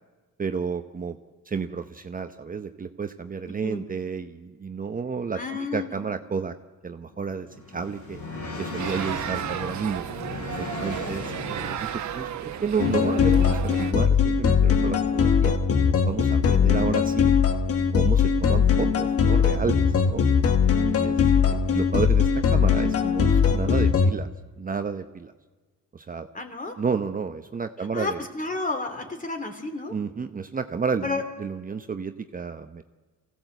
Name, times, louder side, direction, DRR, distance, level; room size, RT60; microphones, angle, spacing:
voice 1, 0.4-1.2 1.5-6.5 6.8-8.2 8.6-10.1 10.6-15.6 16.1-17.3 17.9-20.2 20.9-24.3 24.6-25.3 25.9-26.3 26.8-28.3 29.9-32.8, right 5 dB, 30° right, 8 dB, 0.8 m, -31 dB
voice 2, 5.3-6.0 11.0-11.1 16.4-16.7 21.1-21.5 26.3-26.8 27.9-29.9 31.0-31.2, left 3 dB, 25° left, 5 dB, 3.1 m, -32 dB
sound 1, 7.1-12.1, left 3 dB, 75° left, 6.8 m, -37 dB
sound 2, 8.8-13.9, right 9 dB, 70° right, 1.3 m, -33 dB
sound 3, 12.8-24.1, left 6 dB, 50° left, 1.4 m, -21 dB
23.0 x 16.0 x 8.1 m, 1.3 s
cardioid pair, 90°, 30 cm